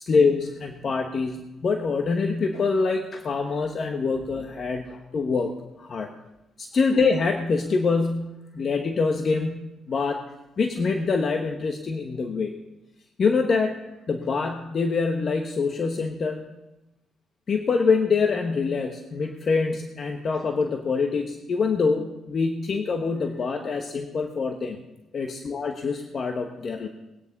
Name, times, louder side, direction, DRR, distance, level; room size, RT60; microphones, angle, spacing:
voice 1, 0.0-6.1 6.6-10.2 10.6-12.5 13.2-13.7 14.1-16.5 17.5-24.8 25.1-26.9, left 4 dB, 50° left, 4 dB, 1.2 m, -25 dB
20.5 x 9.5 x 4.1 m, 0.97 s
cardioid pair, 90°, 0 cm